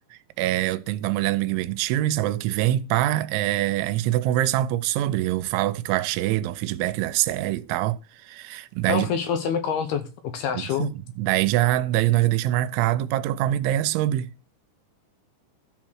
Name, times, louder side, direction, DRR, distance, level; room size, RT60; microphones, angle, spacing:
voice 1, 0.1-8.0 8.2-9.1 10.5-14.3, right 14 dB, 90° right, 3.1 m, -24 dB
voice 2, 8.9-10.1 10.3-10.9, left 7 dB, 75° left, 2.6 m, -26 dB
13.0 x 4.4 x 6.3 m
omnidirectional pair, 5.3 m